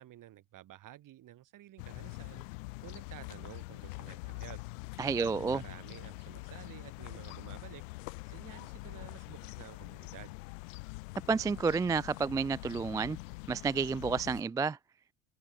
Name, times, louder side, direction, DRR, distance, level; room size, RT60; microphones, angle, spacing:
voice 1, 0.0-2.4 2.8-4.6 5.2-7.8 8.3-10.4, right 13 dB, 50° right, 5.3 m, -51 dB
sound 1, 1.8-14.4, left 27 dB, 65° left, 1.1 m, -45 dB
voice 2, 5.0-5.6 11.3-13.2 13.5-14.8, right 5 dB, 10° right, 0.3 m, -30 dB
hypercardioid pair, 70°, 41 cm